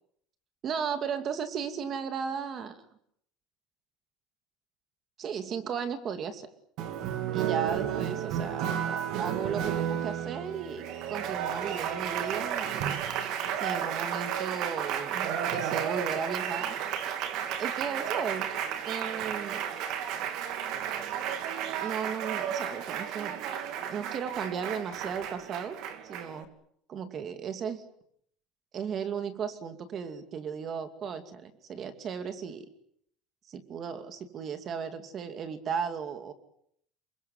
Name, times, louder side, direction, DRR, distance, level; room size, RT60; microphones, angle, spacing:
voice 1, 0.6-2.8 5.2-6.5 7.3-12.8 13.6-16.8 17.6-18.5 18.9-19.7 21.8-23.5 23.9-25.8 26.0-26.5 26.9-27.8 28.7-32.7 33.5-36.3, right 7 dB, 30° right, 9 dB, 2.5 m, -35 dB
Applause, 6.8-26.4, right 9 dB, 50° right, 2.7 m, -32 dB
27.5 x 23.5 x 7.7 m, 0.68 s
cardioid pair, 175°, 0 cm